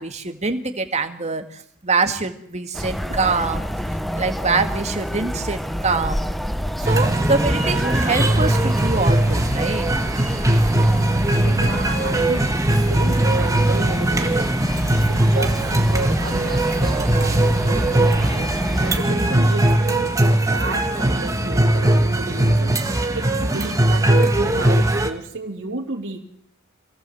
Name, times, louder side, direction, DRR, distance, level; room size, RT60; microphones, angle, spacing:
voice 1, 0.0-3.7 4.1-6.3 6.8-9.9, right 4 dB, 30° right, 6 dB, 2.2 m, -24 dB
sound 1, 2.7-19.0, equal, ahead, 0.9 m, -28 dB
sound 2, 6.8-25.1, right 1 dB, 15° right, 2.0 m, -19 dB
voice 2, 11.4-14.5 15.1-20.1 20.5-22.8 23.1-26.2, right 2 dB, 60° right, 0 dB, 3.3 m, -32 dB
27.0 x 18.0 x 7.9 m, 0.68 s
head